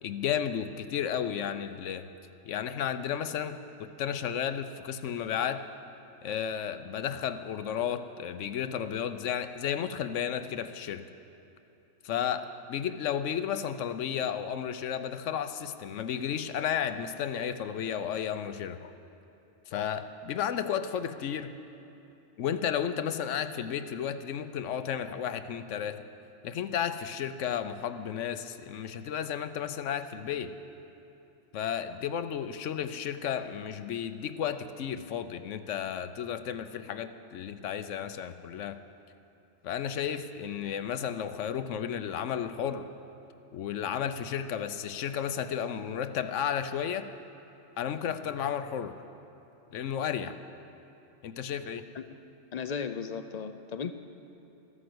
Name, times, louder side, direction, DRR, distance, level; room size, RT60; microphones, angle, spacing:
voice 1, 0.0-2.1 2.4-5.6 6.2-11.0 12.0-18.9 19.7-21.5 22.4-26.0 26.4-30.5 31.5-38.8 39.6-42.8 43.5-47.1 47.8-48.9 49.7-50.4 51.2-51.8, left 8 dB, 80° left, 11 dB, 1.0 m, -33 dB
voice 2, 52.5-53.9, left 6 dB, 50° left, 10 dB, 0.5 m, -36 dB
13.5 x 11.5 x 7.8 m, 2.9 s
omnidirectional pair, 1.3 m